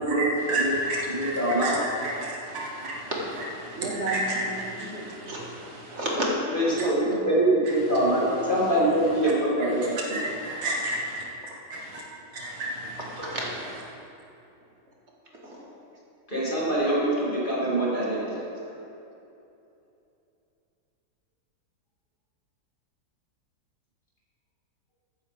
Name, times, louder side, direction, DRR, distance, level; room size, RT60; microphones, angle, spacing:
voice 1, 0.0-3.1 3.6-6.0 6.7-6.8 7.6-7.9 9.2-9.3 9.6-11.2 11.7-12.0 12.3-13.0, right 1 dB, 85° right, -3 dB, 2.2 m, -32 dB
voice 2, 1.1-1.8 6.5-10.2 16.3-18.4, right 1 dB, 25° left, -8 dB, 2.9 m, -24 dB
voice 3, 3.8-5.4 5.9-6.3 6.7-7.3 8.0-8.4 13.0-13.5 15.3-15.7 18.6-18.7, right 1 dB, 40° right, -3 dB, 2.0 m, -32 dB
14.5 x 9.8 x 3.6 m, 2.8 s
omnidirectional pair, 2.0 m